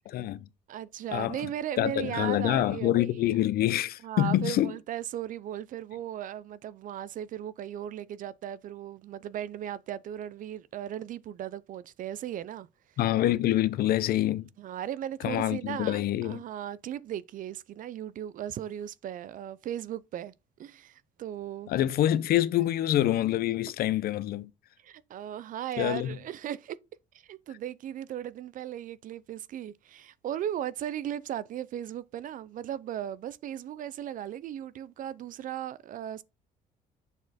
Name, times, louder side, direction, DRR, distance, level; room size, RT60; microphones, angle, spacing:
voice 1, 0.1-0.5 1.1-1.3 1.8-4.7 13.0-14.5 15.2-16.4 21.7-24.5 25.8-26.2, left 13 dB, 65° left, 0.6 m, -26 dB
voice 2, 0.7-3.2 4.0-12.7 14.6-20.3 20.6-21.7 24.8-26.8 27.2-36.2, right 11 dB, 55° right, 0.4 m, -37 dB
7.0 x 4.2 x 4.1 m
cardioid pair, 110°, 17 cm